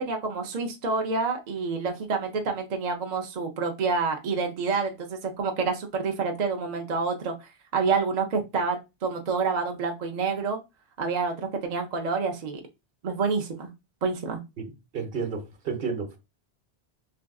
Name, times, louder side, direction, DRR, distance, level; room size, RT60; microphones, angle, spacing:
voice 1, 0.0-10.6 11.0-12.6 13.0-13.7 14.0-14.4, right 4 dB, 50° right, 0.6 m, -28 dB
voice 2, 14.6-16.2, right 5 dB, 65° right, 0.9 m, -32 dB
3.5 x 2.6 x 2.3 m
omnidirectional pair, 1.0 m